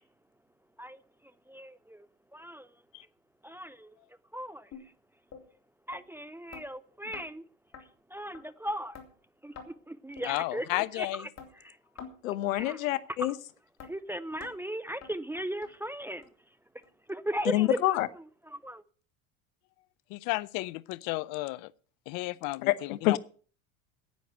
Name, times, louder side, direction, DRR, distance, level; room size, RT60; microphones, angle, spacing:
voice 1, 1.5-2.1 2.3-2.7 3.4-3.9 4.3-4.7 5.9-7.4 8.1-9.0 9.4-9.5 9.9-11.3 11.6-11.7 12.5-12.8 13.9-16.2 17.1-18.8, right 1 dB, 5° right, 0.6 m, -37 dB
sound 1, 4.7-4.9 5.3-5.4 5.9-6.0 6.5-6.7 7.1-7.3 7.7-7.8 8.3-8.4 8.9-9.1 9.6-9.7 10.2-10.3 10.8-10.9 11.4-11.5 12.0-12.2 12.6-12.7 13.2-13.3 13.8-13.9 14.4-14.5 15.0-15.1 15.6-15.7 16.2-16.3 16.8-16.9 17.4-17.5, left 6 dB, 40° left, 3.2 m, -46 dB
voice 2, 10.2-11.3 20.1-21.7 22.1-23.2, left 21 dB, 55° left, 0.7 m, -33 dB
voice 3, 12.2-13.3 17.5-18.1 22.7-23.2, left 15 dB, 75° left, 1.0 m, -27 dB
10.5 x 9.5 x 7.9 m
hypercardioid pair, 90°, 41 cm